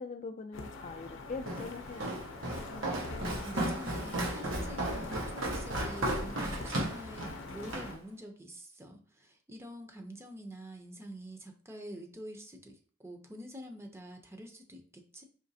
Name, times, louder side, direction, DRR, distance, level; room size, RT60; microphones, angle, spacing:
voice 1, 0.0-2.2, left 4 dB, 40° left, 6 dB, 0.3 m, -42 dB
sound 1, 0.5-8.0, left 3 dB, 75° left, 0.6 m, -44 dB
Walk footsteps, 1.5-7.9, right 1 dB, 85° right, 1.2 m, -35 dB
voice 2, 3.2-15.2, equal, 15° right, 4 dB, 0.6 m, -46 dB
5.0 x 3.1 x 2.7 m, 0.42 s
head